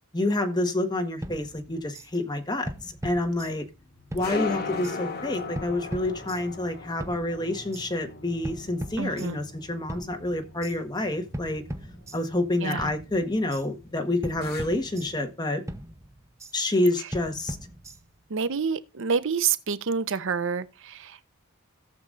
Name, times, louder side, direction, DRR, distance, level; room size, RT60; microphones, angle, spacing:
voice 1, 0.1-2.7 3.0-3.7 4.1-11.6 12.1-15.6 16.5-17.6, left 1 dB, 20° left, 1.3 m, -28 dB
sound 1, 1.2-2.1 2.7-3.8 4.1-5.0 5.5-6.6 7.0-7.9 8.4-9.6 9.9-10.8 11.3-12.5 12.8-13.6 14.2-15.4 15.7-16.5 17.1-18.3, right 1 dB, 15° right, 0.8 m, -39 dB
sound 2, 1.7-15.3, left 4 dB, 50° left, 1.9 m, -40 dB
voice 2, 9.0-9.4 12.6-12.9 18.3-21.2, right 6 dB, 65° right, 0.7 m, -28 dB
17.0 x 6.9 x 2.5 m
head